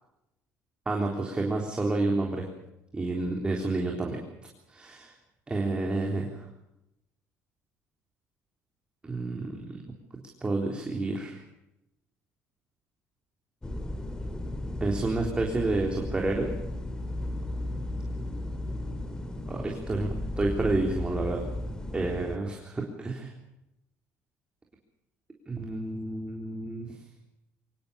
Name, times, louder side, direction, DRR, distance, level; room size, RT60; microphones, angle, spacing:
voice 1, 0.9-2.5 2.9-4.2 4.7-5.1 5.5-6.5 9.0-9.8 10.4-11.4 14.8-16.5 19.5-21.4 21.9-23.3 25.5-27.0, right 2 dB, 20° right, 0 dB, 3.8 m, -30 dB
sound 1, 13.6-22.4, left 1 dB, 15° left, 2.3 m, -35 dB
24.5 x 20.0 x 7.0 m, 0.88 s
cardioid pair, 125°, 6 cm